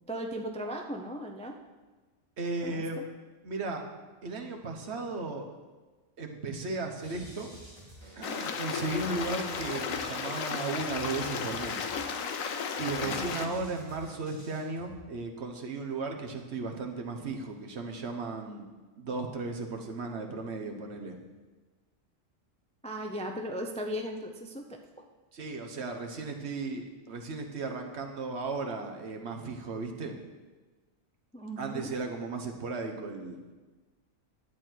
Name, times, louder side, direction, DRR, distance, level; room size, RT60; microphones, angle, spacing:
voice 1, 0.1-1.6 2.6-3.0 13.0-13.6 22.8-24.8 31.3-31.9, equal, 10° left, 2 dB, 0.4 m, -37 dB
voice 2, 2.4-3.0 3.4-3.8 4.2-5.5 6.2-7.5 8.2-11.9 12.8-18.7 19.0-21.2 25.3-30.2 31.6-33.4, right 3 dB, 60° right, 3 dB, 1.3 m, -35 dB
sound 1, 7.0-15.0, right 1 dB, 20° right, 3.5 m, -51 dB
Stream, 8.2-13.5, left 6 dB, 90° left, 1.2 m, -34 dB
11.0 x 8.5 x 4.5 m, 1.3 s
omnidirectional pair, 1.3 m